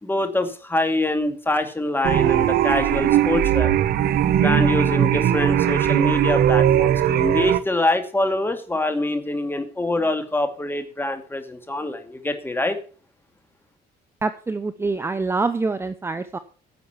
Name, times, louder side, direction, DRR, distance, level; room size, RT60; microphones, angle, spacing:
voice 1, 0.0-3.7 4.3-12.8, left 2 dB, 10° left, 7 dB, 2.3 m, -25 dB
sound 1, 2.0-7.6, right 11 dB, 65° right, 1.1 m, -19 dB
voice 2, 14.2-16.4, right 3 dB, 15° right, 10 dB, 0.8 m, -25 dB
10.5 x 7.1 x 7.2 m, 0.40 s
cardioid pair, 110°, 17 cm